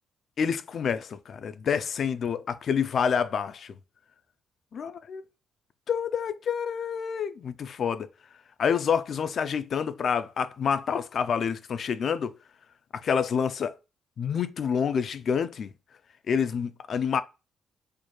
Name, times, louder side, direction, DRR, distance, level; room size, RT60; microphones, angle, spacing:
voice 1, 0.4-3.8 4.7-5.2 5.9-8.1 8.6-12.3 13.0-13.8 14.2-15.7 16.3-17.2, left 7 dB, 55° left, 0.4 m, -28 dB
4.5 x 3.0 x 2.3 m
cardioid pair, 90°, 0 cm